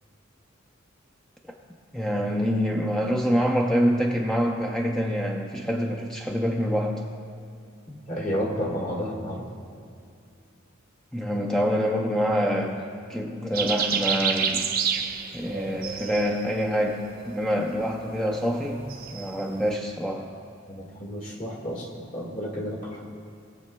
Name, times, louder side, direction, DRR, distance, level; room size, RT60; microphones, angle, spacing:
voice 1, 1.9-7.0 7.9-8.0 11.1-14.7 15.3-20.3, equal, 5° left, 0 dB, 0.5 m, -26 dB
voice 2, 8.1-9.5 20.7-23.0, equal, 45° left, -2 dB, 1.7 m, -31 dB
sound 1, 13.5-19.7, right 6 dB, 50° right, 0.6 m, -30 dB
20.0 x 7.6 x 2.3 m, 2.4 s
head